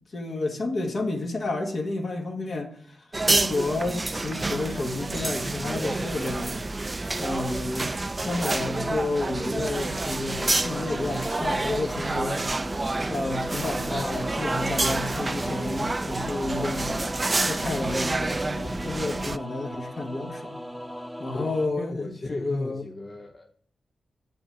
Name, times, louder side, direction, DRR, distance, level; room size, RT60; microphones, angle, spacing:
voice 1, 0.1-6.6 7.2-12.4 12.8-17.0 17.4-20.6 21.2-22.8, left 2 dB, 60° left, 1.5 m, -31 dB
sound 1, 3.1-19.4, right 2 dB, 30° right, 0.3 m, -28 dB
sound 2, 10.4-21.7, equal, ahead, 0.8 m, -38 dB
voice 2, 21.4-23.5, left 2 dB, 45° left, 0.7 m, -36 dB
8.4 x 5.4 x 4.6 m
cardioid pair, 75°, 0 cm